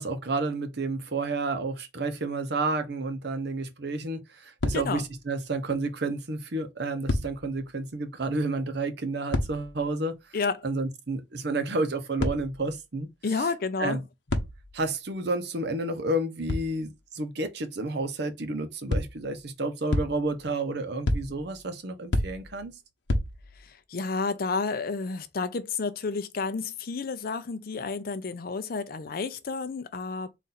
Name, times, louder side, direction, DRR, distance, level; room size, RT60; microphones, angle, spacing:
voice 1, 0.0-10.2 10.6-13.5 13.8-14.0 14.7-22.8, right 2 dB, 60° right, 0.8 m, -30 dB
sound 1, 4.6-5.2 5.7-5.8 7.0-7.7 9.3-9.9 12.2-12.8 14.3-14.9 16.5-17.0 18.9-19.4 19.9-20.5 21.1-21.7 22.1-22.7 23.1-23.7, left 1 dB, 75° left, 1.0 m, -30 dB
voice 2, 4.7-5.0 10.3-10.6 13.2-14.0 23.7-30.4, left 4 dB, 50° left, 0.5 m, -31 dB
4.1 x 2.5 x 4.0 m
head